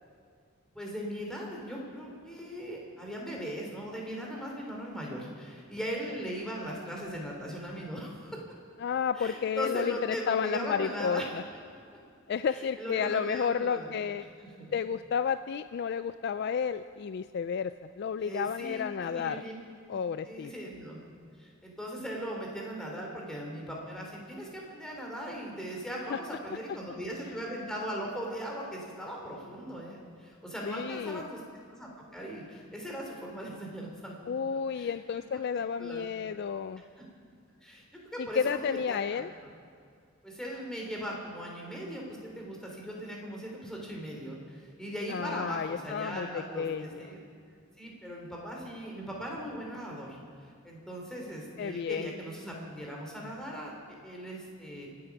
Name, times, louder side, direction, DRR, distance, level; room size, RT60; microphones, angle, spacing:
voice 1, 0.7-8.4 9.2-11.3 12.5-13.9 14.4-14.7 18.2-19.5 19.9-20.0 20.2-21.0 21.4-31.4 31.7-34.1 34.7-35.0 35.3-35.4 35.8-36.1 37.6-39.3 40.2-47.2 47.8-54.9, equal, 5° left, -2 dB, 3.0 m, -39 dB
voice 2, 8.8-11.2 12.3-14.2 14.7-19.4 19.9-20.5 26.1-26.2 30.6-31.2 34.3-36.8 38.2-39.3 45.1-47.0 51.6-52.1, left 7 dB, 55° left, 12 dB, 0.3 m, -31 dB
25.5 x 8.6 x 5.9 m, 2.3 s
head